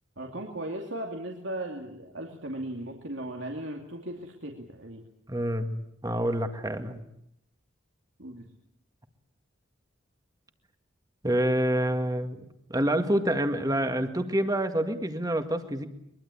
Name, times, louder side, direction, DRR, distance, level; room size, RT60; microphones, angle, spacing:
voice 1, 0.2-5.0 8.2-8.4, right 1 dB, 75° right, 1 dB, 2.7 m, -37 dB
voice 2, 5.3-7.0 11.2-15.9, right 1 dB, 20° right, 7 dB, 1.9 m, -27 dB
23.0 x 22.5 x 8.6 m, 0.75 s
head